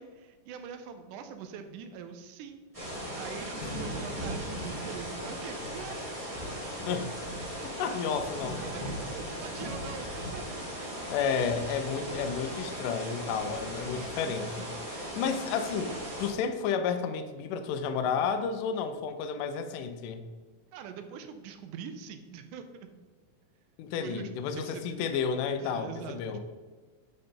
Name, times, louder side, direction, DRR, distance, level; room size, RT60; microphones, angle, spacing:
voice 1, 0.0-2.7 3.1-6.0 7.8-8.0 8.6-10.6 12.0-12.2 13.9-14.6 15.1-15.2 20.7-22.9 24.0-24.3 24.6-25.2 25.6-26.4, right 7 dB, 80° right, 8 dB, 1.9 m, -43 dB
sound 1, 2.7-16.3, equal, 15° right, 1.6 m, -37 dB
voice 2, 7.6-8.6 11.1-14.7 15.2-20.2 23.8-26.4, left 6 dB, 80° left, 9 dB, 2.1 m, -31 dB
8.5 x 5.3 x 4.4 m, 1.4 s
omnidirectional pair, 4.1 m